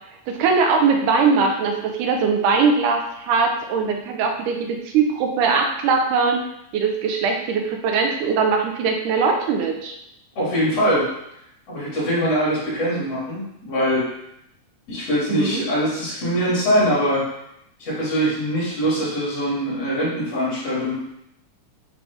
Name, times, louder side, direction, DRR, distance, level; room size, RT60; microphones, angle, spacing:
voice 1, 0.3-6.4 6.7-10.0 15.3-15.6, right 5 dB, 80° right, 3 dB, 2.2 m, -21 dB
voice 2, 10.3-11.1 11.7-14.1 14.9-17.2 17.8-20.9, equal, 50° left, -8 dB, 3.3 m, -22 dB
8.7 x 3.1 x 3.4 m, 0.78 s
omnidirectional pair, 3.7 m